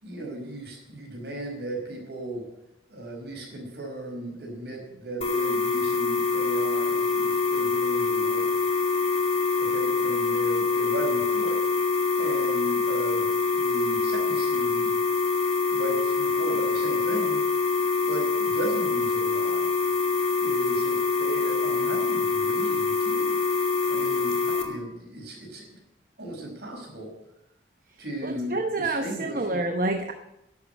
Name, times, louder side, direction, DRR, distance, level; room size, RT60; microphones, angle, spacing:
voice 1, 0.0-2.5 2.9-8.5 9.6-11.6 12.2-14.9 15.7-17.4 18.1-19.7 20.4-23.4 23.9-25.8 26.2-27.1 28.0-29.5, right 2 dB, 70° right, 0 dB, 5.2 m, -36 dB
sound 1, 5.2-24.6, left 4 dB, 35° left, 2.2 m, -25 dB
voice 2, 28.2-30.1, right 2 dB, 50° right, 5 dB, 0.9 m, -28 dB
11.5 x 8.5 x 9.6 m, 0.88 s
head